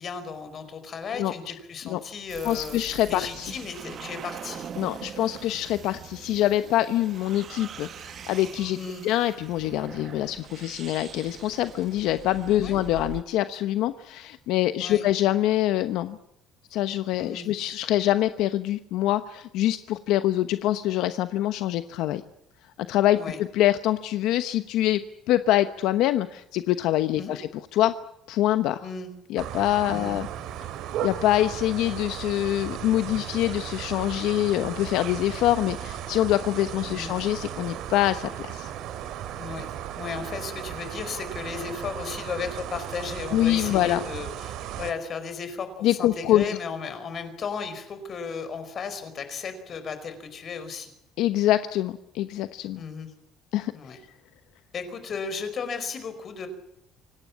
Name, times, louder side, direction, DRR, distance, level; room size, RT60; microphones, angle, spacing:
voice 1, 0.0-2.8 3.1-4.7 8.7-9.0 12.6-12.8 14.8-15.1 17.2-17.5 23.1-23.4 27.2-27.4 28.8-29.1 29.9-30.2 36.9-37.1 39.3-50.9 52.8-53.1 53.7-54.0 54.7-56.5, left 5 dB, 40° left, 10 dB, 4.9 m, -35 dB
sound 1, 2.3-13.2, right 8 dB, 40° right, 1.2 m, -42 dB
voice 2, 2.4-3.6 4.8-8.8 9.0-16.2 16.7-22.2 22.8-25.0 25.3-27.9 28.3-28.9 29.3-30.3 31.0-38.7 43.3-44.0 45.8-46.6 51.2-52.8 53.5-54.0, left 13 dB, 75° left, 11 dB, 1.0 m, -25 dB
sound 2, 29.4-44.9, right 10 dB, 70° right, 2.8 m, -36 dB
26.0 x 18.5 x 8.6 m, 0.80 s
cardioid pair, 140°, 0 cm